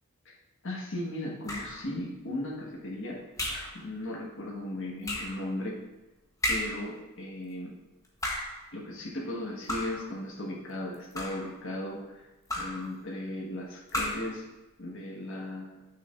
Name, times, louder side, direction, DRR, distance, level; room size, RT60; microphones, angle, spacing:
voice 1, 0.6-5.8 6.5-7.7 8.7-12.3 12.5-14.4 14.8-15.8, left 1 dB, 60° left, -3 dB, 1.6 m, -37 dB
sound 1, 1.5-1.9 3.4-3.8 5.0-5.4 6.4-6.9 8.0-8.6 9.7-10.1 10.9-11.5 12.5-12.9 13.9-14.4, left 1 dB, 15° left, 1.1 m, -33 dB
9.1 x 6.7 x 2.6 m, 1.1 s
head